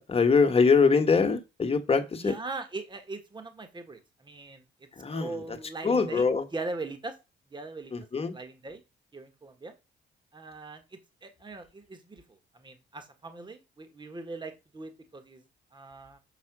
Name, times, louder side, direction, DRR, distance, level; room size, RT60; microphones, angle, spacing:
voice 1, 0.1-2.3 5.0-5.3 5.8-6.4 7.9-8.3, left 5 dB, 30° left, 1.4 m, -23 dB
voice 2, 2.2-4.6 5.1-7.2 7.5-8.0 8.3-8.8 9.1-9.7 10.3-15.4 15.7-16.2, right 3 dB, 25° right, 1.5 m, -40 dB
7.2 x 4.1 x 6.1 m
cardioid pair, 90°, 20 cm